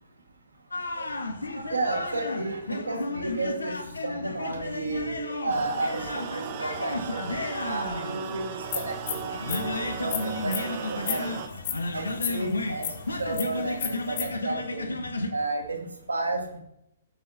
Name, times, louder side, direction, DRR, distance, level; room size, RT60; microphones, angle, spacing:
sound 1, 0.7-15.3, left 2 dB, 80° left, 1.1 m, -33 dB
voice 1, 1.5-3.8 4.0-7.2 7.6-8.9 9.3-11.2 11.9-12.9 13.2-14.8 15.3-16.6, right 2 dB, 85° right, 2 dB, 1.9 m, -32 dB
sound 2, 5.5-11.5, right 8 dB, 45° right, 0.8 m, -36 dB
sound 3, 8.7-14.2, left 8 dB, 45° left, 1.7 m, -34 dB
9.2 x 6.0 x 4.3 m, 0.76 s
figure-of-eight pair, 120°, 0 cm